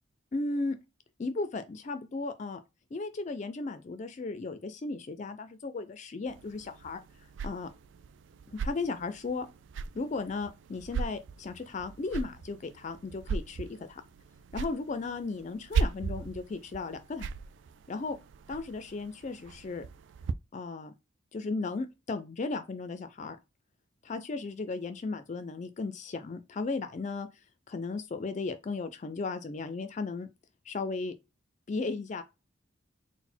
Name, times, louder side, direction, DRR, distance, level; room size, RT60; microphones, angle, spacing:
voice 1, 0.3-0.8 1.2-2.6 2.9-7.0 7.4-7.7 8.5-9.5 9.9-14.0 14.5-17.3 17.9-18.2 18.5-19.8 20.5-20.9 21.3-23.4 24.0-27.3 27.7-30.3 30.7-31.1 31.7-32.2, left 3 dB, 35° left, 0.3 m, -35 dB
sound 1, 6.3-20.3, right 5 dB, 65° right, 0.3 m, -38 dB
4.0 x 2.1 x 4.3 m
head